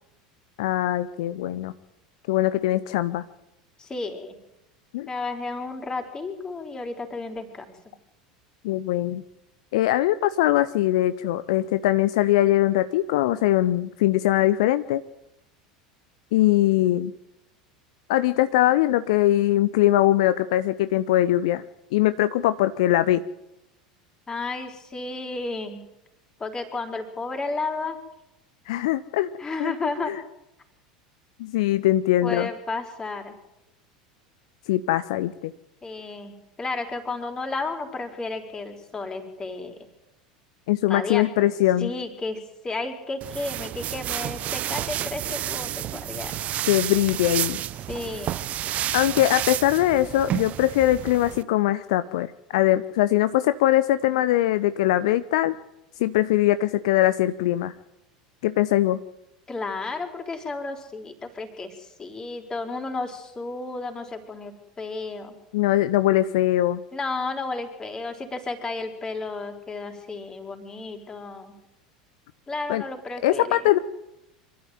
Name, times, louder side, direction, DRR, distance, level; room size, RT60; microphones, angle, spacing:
voice 1, 0.6-1.7 2.3-3.2 4.9-5.1 8.6-9.2 9.7-15.0 16.3-17.1 18.1-21.6 21.9-23.2 28.7-29.3 29.6-29.7 30.0-30.2 31.4-32.5 34.7-35.5 40.7-41.9 46.7-47.6 48.9-55.5 56.0-57.7 58.4-59.0 65.5-66.8 72.7-72.8 73.2-73.8, left 14 dB, 55° left, 14 dB, 0.9 m, -21 dB
voice 2, 3.8-4.4 5.1-7.7 24.3-25.8 26.4-28.0 29.4-30.1 32.2-33.3 35.8-39.8 40.9-41.5 41.8-46.3 47.9-48.3 59.5-65.4 66.9-71.5 72.5-73.6, left 3 dB, 20° left, 6 dB, 4.7 m, -32 dB
sound 1, 43.2-51.4, right 13 dB, 35° right, 0.8 m, -30 dB
26.5 x 13.5 x 9.4 m, 0.88 s
figure-of-eight pair, 75°, 4 cm